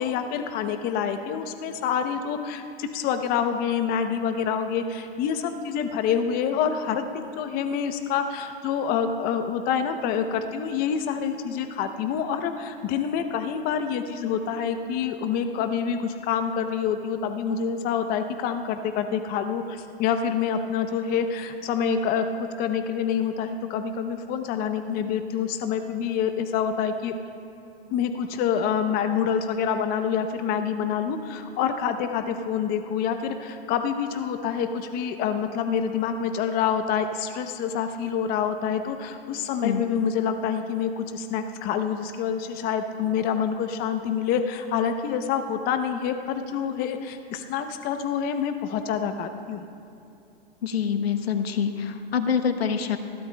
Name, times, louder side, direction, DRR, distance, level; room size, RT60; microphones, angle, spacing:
voice 1, 0.0-27.2 27.9-49.7, left 7 dB, 30° left, 8 dB, 0.7 m, -27 dB
voice 2, 50.6-53.0, left 7 dB, 80° left, 8 dB, 0.9 m, -25 dB
21.0 x 15.0 x 2.2 m, 2.7 s
hypercardioid pair, 120°, 30 cm